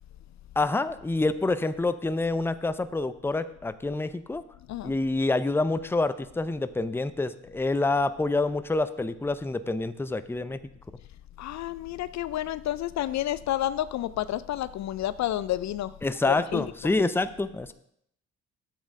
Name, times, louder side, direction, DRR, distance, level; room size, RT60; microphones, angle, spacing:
voice 1, 0.6-4.4 4.8-10.6 16.0-17.7, left 2 dB, 5° left, 13 dB, 0.5 m, -27 dB
voice 2, 11.4-15.9 16.2-16.7, left 13 dB, 55° left, 16 dB, 0.4 m, -30 dB
10.0 x 7.5 x 3.7 m, 0.72 s
supercardioid pair, 55°, 33 cm